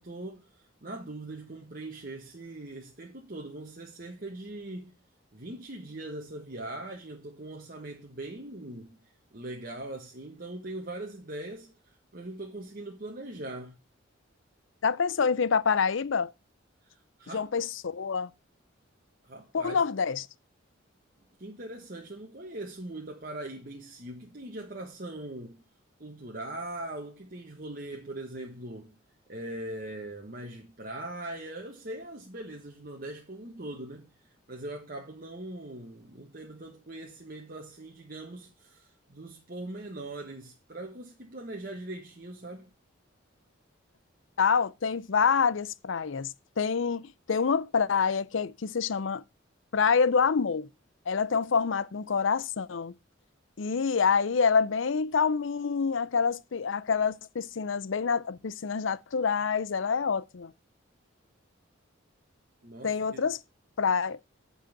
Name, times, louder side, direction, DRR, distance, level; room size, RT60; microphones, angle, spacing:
voice 1, 0.0-5.0 5.3-9.0 9.3-13.8 16.8-17.5 19.2-19.8 21.4-25.6 26.0-29.0 29.3-34.1 34.5-42.7 62.6-63.2, right 1 dB, 45° right, 1.4 m, -41 dB
voice 2, 14.8-16.3 17.3-18.3 19.5-20.3 44.4-49.2 49.7-50.7 51.1-52.9 53.6-60.5 62.8-63.4 63.8-64.2, left 5 dB, 70° left, 0.5 m, -27 dB
8.7 x 5.6 x 7.1 m
head